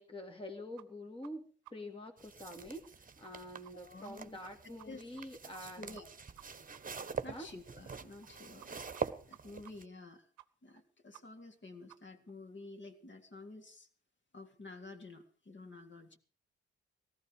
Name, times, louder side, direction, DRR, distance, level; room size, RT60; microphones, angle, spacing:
voice 1, 0.0-5.8 7.3-7.5, left 1 dB, 20° left, 3 dB, 2.4 m, -46 dB
sound 1, 0.8-0.9 1.2-1.3 1.6-1.7 2.0-2.1 2.4-2.5 2.8-2.9 3.2-3.3 3.6-3.7 4.0-4.1 4.4-4.9 5.1-5.2 5.5-5.6 6.0-6.1 6.4-6.5 6.7-6.8 7.1-7.2 7.5-7.6 7.8-7.9 8.2-8.3 8.6-8.7 8.9-9.0 9.3-9.4 9.6-9.7 10.0-10.1 10.4-10.5 10.7-10.8 11.1-11.2 11.5-11.6 11.9-12.0 12.3-12.4, right 19 dB, 80° right, 0.8 m, -56 dB
sound 2, 2.2-9.8, right 5 dB, 30° right, 1.3 m, -45 dB
voice 2, 3.7-4.4 4.6-5.0 5.6-6.1 7.0-10.3 10.6-13.9 14.3-16.2, left 2 dB, 40° left, 4 dB, 3.5 m, -51 dB
18.5 x 14.0 x 5.1 m, 0.42 s
hypercardioid pair, 45°, 29 cm